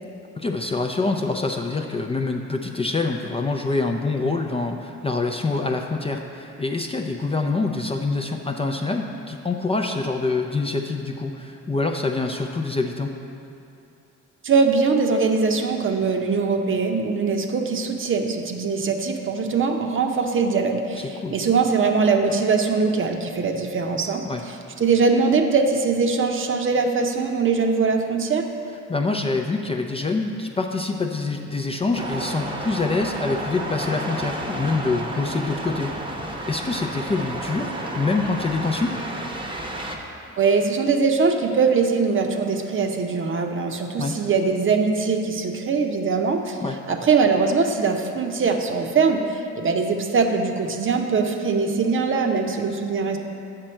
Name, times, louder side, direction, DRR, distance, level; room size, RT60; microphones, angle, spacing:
voice 1, 0.4-13.1 21.0-21.4 24.2-24.4 28.9-38.9 44.0-44.1 46.6-46.8, left 3 dB, 20° left, 3 dB, 0.4 m, -26 dB
voice 2, 14.4-28.5 40.4-46.6 46.9-53.2, right 4 dB, 45° right, 4 dB, 0.7 m, -22 dB
sound 1, 31.9-40.0, right 1 dB, 15° right, 0.8 m, -31 dB
7.7 x 6.1 x 4.4 m, 2.7 s
cardioid pair, 90°, 30 cm